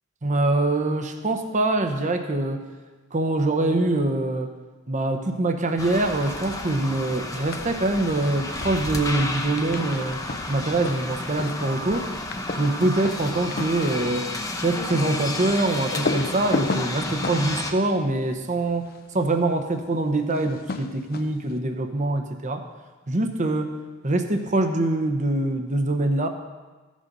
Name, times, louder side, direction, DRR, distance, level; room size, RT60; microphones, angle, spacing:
voice 1, 0.2-2.6 3.1-4.5 4.9-10.2 10.5-12.1 12.6-14.3 14.6-22.7 23.1-23.8 24.0-26.3, right 2 dB, 40° right, 6 dB, 0.9 m, -24 dB
sound 1, 5.8-17.7, left 2 dB, 20° left, 0.8 m, -32 dB
sound 2, 7.3-7.8 8.1-19.1 20.3-21.5, left 3 dB, 50° left, 0.6 m, -34 dB
14.5 x 6.4 x 5.3 m, 1.3 s
head